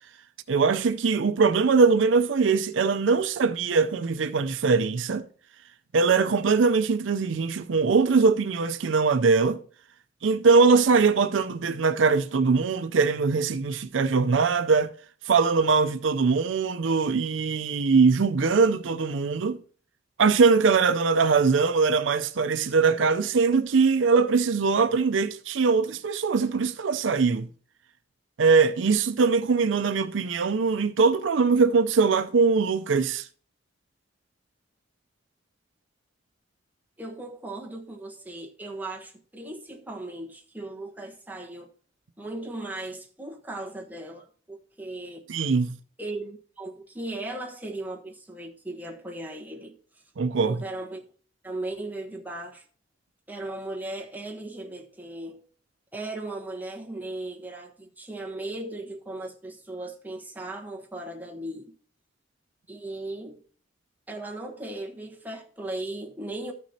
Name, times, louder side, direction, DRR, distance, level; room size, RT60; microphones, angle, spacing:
voice 1, 0.5-5.3 5.9-9.6 10.2-14.9 15.3-19.6 20.2-27.5 28.4-33.3 45.3-45.8 50.2-50.6, right 4 dB, 85° right, 0.5 m, -22 dB
voice 2, 37.0-41.7 42.2-45.2 46.0-49.8 50.4-51.0 51.4-52.6 53.3-55.4 55.9-61.7 62.7-63.4 64.1-66.5, right 2 dB, 10° right, 1.2 m, -37 dB
14.0 x 6.1 x 2.8 m
head